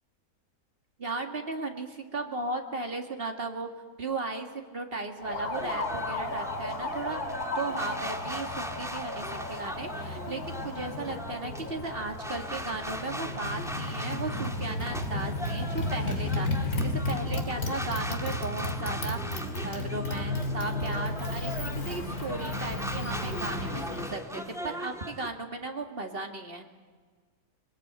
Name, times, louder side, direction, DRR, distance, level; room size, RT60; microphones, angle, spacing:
voice 1, 1.0-3.7 4.0-7.2 7.5-26.6, right 3 dB, 35° right, 4 dB, 2.3 m, -36 dB
Motorcycle, 5.2-24.2, left 2 dB, 65° left, 3.0 m, -33 dB
sound 1, 5.5-25.3, equal, ahead, 1.4 m, -40 dB
23.0 x 20.0 x 9.0 m, 1.5 s
omnidirectional pair, 1.7 m